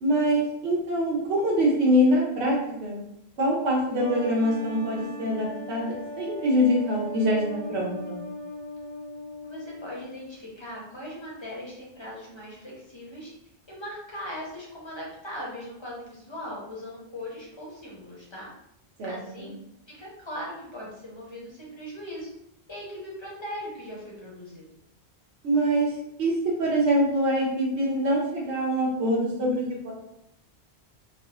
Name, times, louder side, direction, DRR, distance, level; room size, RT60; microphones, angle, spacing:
voice 1, 0.0-3.0 3.4-8.2 19.0-19.5 25.4-25.9 26.2-26.3 26.6-29.9, equal, 90° right, -3 dB, 1.0 m, -24 dB
sound 1, 4.0-10.3, left 1 dB, 45° right, 1.5 m, -39 dB
voice 2, 9.4-13.3 13.7-18.5 19.1-19.6 19.9-22.3 22.7-24.6, equal, 30° left, -5 dB, 0.7 m, -39 dB
3.8 x 2.0 x 2.3 m, 0.81 s
omnidirectional pair, 1.1 m